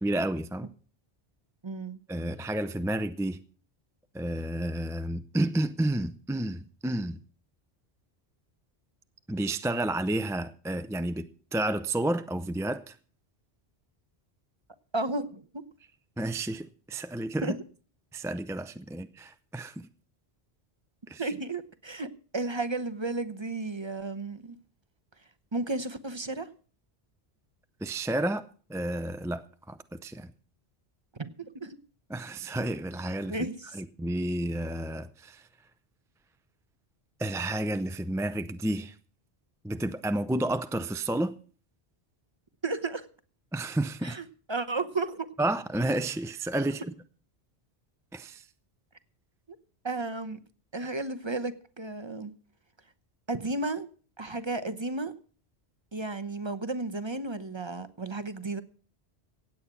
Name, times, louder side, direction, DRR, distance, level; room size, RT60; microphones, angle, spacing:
voice 1, 0.0-0.7 2.1-3.4 4.1-7.2 9.3-13.0 16.2-17.6 18.1-19.9 21.1-21.3 27.8-30.3 32.1-33.4 33.7-35.5 37.2-39.0 39.6-41.4 43.5-44.2 45.4-46.9 48.1-48.5, right 1 dB, 5° right, 0.4 m, -31 dB
voice 2, 1.6-2.0 14.9-15.6 17.4-17.6 21.2-24.6 25.5-26.5 31.2-31.8 33.3-33.8 42.6-43.1 44.0-45.3 49.5-49.6 49.8-50.4 50.7-52.3 53.3-53.9 54.2-55.1 55.9-58.6, right 2 dB, 30° right, 0.8 m, -33 dB
16.5 x 8.8 x 6.0 m
omnidirectional pair, 1.1 m